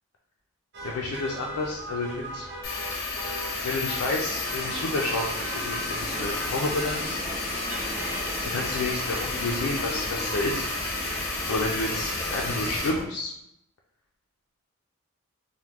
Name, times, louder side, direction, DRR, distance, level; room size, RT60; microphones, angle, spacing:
sound 1, 0.7-13.0, right 1 dB, 50° right, 0.6 m, -37 dB
voice 1, 0.8-2.5 3.6-7.2 8.4-10.7 11.5-13.3, left 2 dB, 75° left, -2 dB, 0.4 m, -30 dB
sound 2, 2.6-12.9, left 3 dB, 45° left, 0.7 m, -32 dB
3.4 x 2.1 x 2.9 m, 0.81 s
head